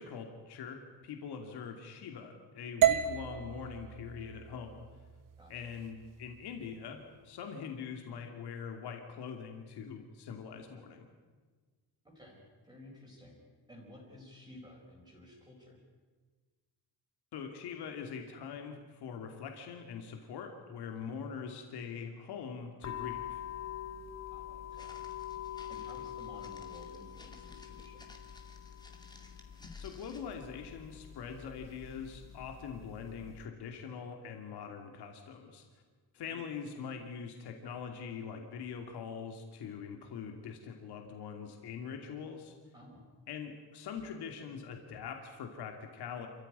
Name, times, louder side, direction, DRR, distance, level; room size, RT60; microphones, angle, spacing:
voice 1, 0.0-4.9 5.5-11.1 17.3-23.4 29.8-35.6 36.1-42.6 43.3-46.3, left 6 dB, 80° left, 4 dB, 2.7 m, -43 dB
sound 1, 2.8-6.9, right 10 dB, 55° right, 1.3 m, -33 dB
voice 2, 5.4-5.7 12.0-13.4 13.7-15.8 21.0-21.2 24.3-25.0 25.7-28.2 36.2-36.4 42.7-43.0, left 1 dB, 10° right, -3 dB, 4.6 m, -54 dB
sound 2, 22.8-33.4, left 10 dB, 40° left, 1.8 m, -45 dB
Walk footsteps, 24.7-30.4, left 2 dB, 10° left, 2.4 m, -59 dB
27.5 x 15.0 x 9.8 m, 1.4 s
cardioid pair, 170°, 39 cm